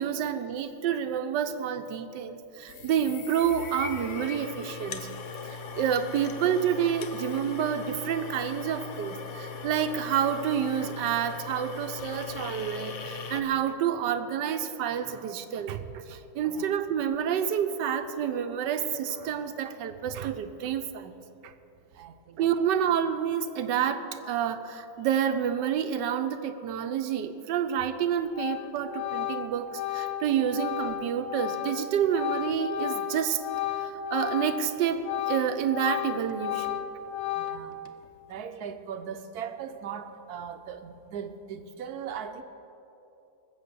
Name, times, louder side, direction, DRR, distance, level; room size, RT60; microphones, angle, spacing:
voice 1, 0.0-5.1 5.7-21.1 21.4-21.5 22.4-33.4 33.8-36.8, right 8 dB, 85° right, 9 dB, 1.4 m, -29 dB
sound 1, 2.7-13.4, left 5 dB, 55° left, 1.0 m, -39 dB
voice 2, 21.9-22.4 37.3-37.8 38.3-42.4, right 7 dB, 65° right, 9 dB, 1.2 m, -39 dB
Organ, 27.8-28.0 28.3-34.7 35.0-37.9, left 10 dB, 70° left, 0.6 m, -33 dB
20.0 x 7.8 x 6.8 m, 2.8 s
omnidirectional pair, 1.9 m